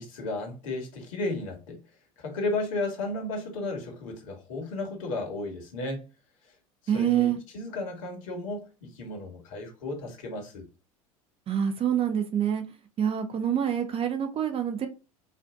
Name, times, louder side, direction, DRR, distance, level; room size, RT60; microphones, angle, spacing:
voice 1, 0.0-1.8 2.2-6.0 6.8-10.7, left 2 dB, 60° left, 1.8 m, -34 dB
voice 2, 6.9-7.4 11.5-12.6 13.0-14.9, right 9 dB, 30° right, 0.8 m, -26 dB
5.0 x 2.7 x 3.5 m
figure-of-eight pair, 75°, 19 cm